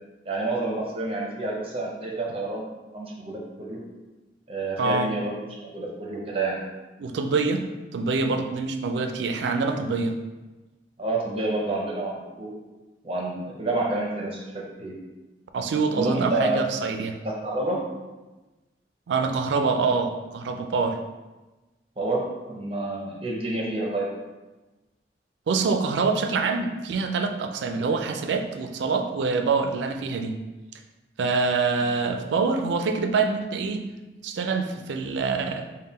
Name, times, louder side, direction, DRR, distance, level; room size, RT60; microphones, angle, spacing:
voice 1, 0.3-2.7 2.9-3.8 4.5-6.6 11.0-12.5 13.0-14.9 15.9-16.6 17.2-17.8 22.0-24.1, right 2 dB, 30° right, -2 dB, 0.6 m, -29 dB
voice 2, 4.8-5.1 7.0-7.7 7.9-10.2 15.5-17.2 19.1-21.0 25.5-30.4 31.2-33.9 34.2-35.7, right 4 dB, 80° right, 6 dB, 0.4 m, -25 dB
3.6 x 2.1 x 4.0 m, 1.1 s
head